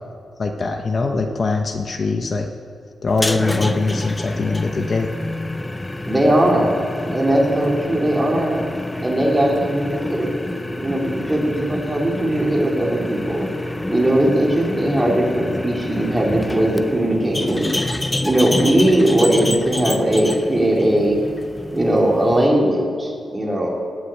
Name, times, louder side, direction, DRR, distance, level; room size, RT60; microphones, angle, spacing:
voice 1, 0.4-2.5 3.0-5.1, left 3 dB, 40° left, 4 dB, 0.8 m, -22 dB
sound 1, 3.1-22.5, left 1 dB, 10° left, 0.5 m, -28 dB
voice 2, 6.1-6.8 7.0-8.6 9.0-10.3 10.6-13.5 13.9-17.7 18.2-21.2 21.7-23.7, right 1 dB, 15° right, -2 dB, 2.9 m, -19 dB
19.0 x 6.5 x 8.4 m, 2.2 s
wide cardioid pair, 135°, 0 cm